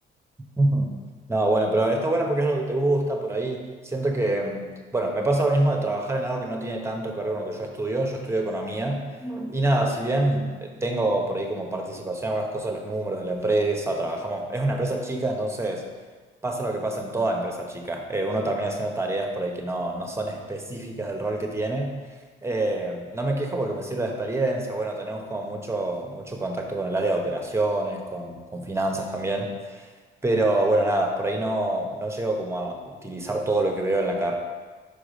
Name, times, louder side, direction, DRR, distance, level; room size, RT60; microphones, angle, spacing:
voice 1, 0.6-0.9 1.3-15.8 16.4-22.0 22.4-29.9 30.2-34.4, right 2 dB, 15° right, 2 dB, 1.0 m, -26 dB
5.3 x 4.8 x 5.1 m, 1.4 s
cardioid pair, 90°, 20 cm